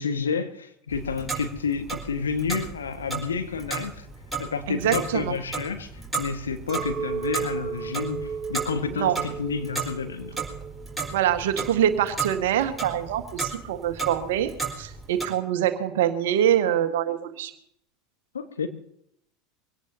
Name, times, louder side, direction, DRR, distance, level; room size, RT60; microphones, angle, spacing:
voice 1, 0.0-4.1 4.4-10.4 18.3-18.7, left 5 dB, 80° left, 7 dB, 1.6 m, -30 dB
Clock, 0.9-15.3, right 4 dB, 5° right, 4.2 m, -34 dB
voice 2, 4.7-5.4 8.9-9.2 11.1-17.5, right 10 dB, 65° right, 8 dB, 1.6 m, -24 dB
Chink clink, 6.7-12.2, right 6 dB, 35° right, 1.1 m, -35 dB
23.5 x 17.5 x 2.8 m, 0.70 s
figure-of-eight pair, 80°, 0 cm